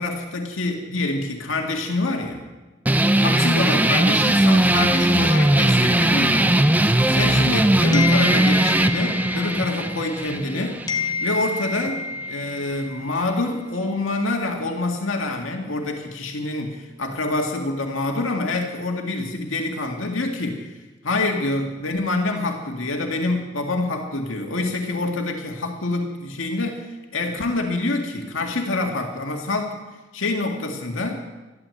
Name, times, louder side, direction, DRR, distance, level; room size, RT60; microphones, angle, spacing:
voice 1, 0.0-2.4 3.1-6.5 7.1-10.8 11.2-29.8 30.1-31.2, left 2 dB, 85° left, 2 dB, 1.9 m, -26 dB
sound 1, 2.9-11.9, right 1 dB, 10° right, 0.6 m, -19 dB
sound 2, 7.9-10.5 10.9-13.4, left 4 dB, 20° left, 1.1 m, -29 dB
13.5 x 13.0 x 7.8 m, 1.2 s
head